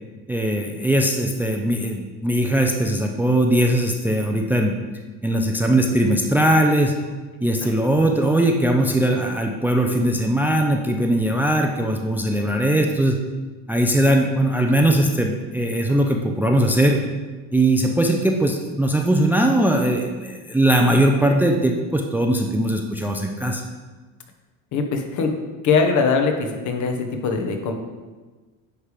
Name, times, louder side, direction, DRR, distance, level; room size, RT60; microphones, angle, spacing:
voice 1, 0.3-4.7 5.2-6.9 7.4-13.2 13.7-17.0 17.5-23.6, right 1 dB, 5° right, 2 dB, 0.5 m, -20 dB
voice 2, 24.7-25.3 25.6-27.7, left 5 dB, 55° left, 4 dB, 1.1 m, -21 dB
10.0 x 3.3 x 5.0 m, 1.3 s
cardioid pair, 125°, 34 cm